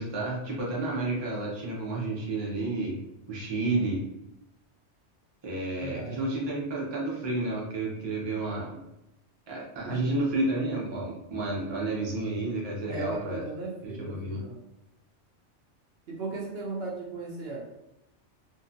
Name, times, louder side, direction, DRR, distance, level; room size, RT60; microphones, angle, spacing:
voice 1, 0.0-3.0 3.3-4.0 5.4-8.8 9.5-13.4 14.0-14.4, right 2 dB, 30° right, -4 dB, 0.6 m, -31 dB
voice 2, 5.8-6.3 9.8-10.1 12.9-14.6 16.1-17.6, right 3 dB, 60° right, -3 dB, 0.8 m, -37 dB
2.6 x 2.2 x 2.5 m, 0.88 s
omnidirectional pair, 1.2 m